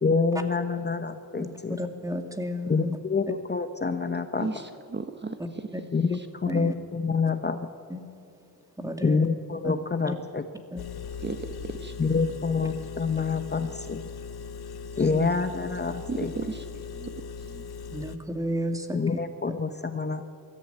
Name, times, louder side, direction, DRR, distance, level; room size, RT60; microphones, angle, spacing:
voice 1, 0.0-1.8 2.7-4.5 5.9-7.7 9.0-10.4 12.0-14.1 15.0-16.3 18.9-20.3, left 4 dB, 25° left, 9 dB, 0.9 m, -27 dB
voice 2, 1.4-3.0 5.7-5.8 6.5-6.7 7.9-8.0 8.8-9.2 9.6-9.7 10.0-10.1 10.7-10.9 15.0-15.2 17.9-19.0, equal, 10° right, 5 dB, 2.2 m, -32 dB
voice 3, 4.4-5.7 6.1-6.3 11.2-11.9 16.1-16.6 16.9-17.1 17.4-17.7, right 4 dB, 30° right, 8 dB, 1.1 m, -35 dB
Engine, 10.8-18.2, left 5 dB, 75° left, 1.2 m, -39 dB
22.5 x 14.0 x 9.1 m, 2.7 s
cardioid pair, 90°, 38 cm